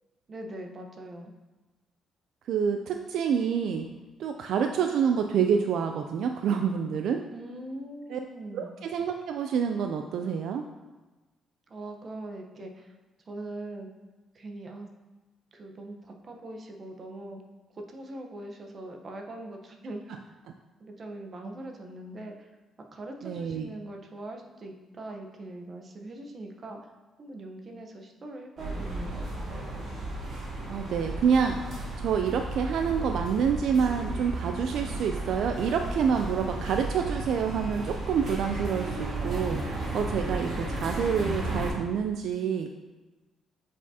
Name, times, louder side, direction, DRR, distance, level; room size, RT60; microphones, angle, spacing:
voice 1, 0.3-1.3 7.3-8.7 11.7-12.9 13.3-13.9 14.3-14.9 15.5-17.4 17.7-20.1 20.8-22.5 22.9-26.8 27.2-29.2, right 1 dB, 45° right, 3 dB, 0.9 m, -41 dB
voice 2, 2.5-3.9 4.2-7.2 8.1-8.2 8.5-10.6 23.2-23.7 30.7-31.6 32.0-42.7, right 7 dB, 75° right, 5 dB, 0.3 m, -27 dB
sound 1, 28.6-41.7, right 2 dB, 60° right, 1.8 m, -34 dB
7.9 x 4.9 x 2.8 m, 1.2 s
cardioid pair, 90°, 0 cm